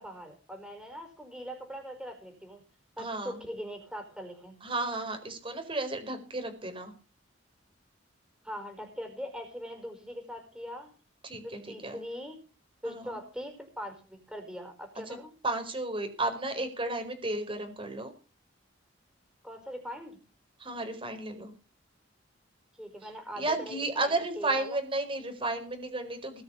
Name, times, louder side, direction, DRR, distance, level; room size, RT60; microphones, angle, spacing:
voice 1, 0.0-2.6 3.0-4.6 8.4-10.9 11.4-12.4 12.8-15.3 19.4-20.2 22.8-24.8, equal, 5° right, 5 dB, 5.0 m, -41 dB
voice 2, 3.0-3.4 4.6-6.9 11.2-12.0 12.8-13.2 15.1-15.2 15.4-18.1 20.6-21.5 23.0-23.1 23.4-26.4, right 2 dB, 25° right, 6 dB, 4.8 m, -33 dB
20.5 x 7.0 x 7.2 m, 0.36 s
head